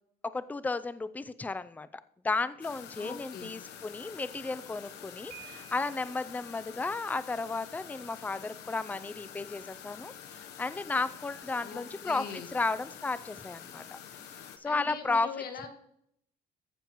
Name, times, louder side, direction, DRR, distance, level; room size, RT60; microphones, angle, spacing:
voice 1, 0.2-10.1 10.6-14.0 14.6-15.3, left 3 dB, 10° left, 15 dB, 0.4 m, -33 dB
sound 1, 2.6-14.6, left 9 dB, 85° left, 1.0 m, -47 dB
voice 2, 2.9-3.5 11.6-12.5 14.6-15.7, left 6 dB, 60° left, 6 dB, 1.7 m, -41 dB
Piano, 5.3-6.3, right 14 dB, 80° right, 3.1 m, -51 dB
14.5 x 7.0 x 3.0 m, 0.71 s
cardioid pair, 110°, 17 cm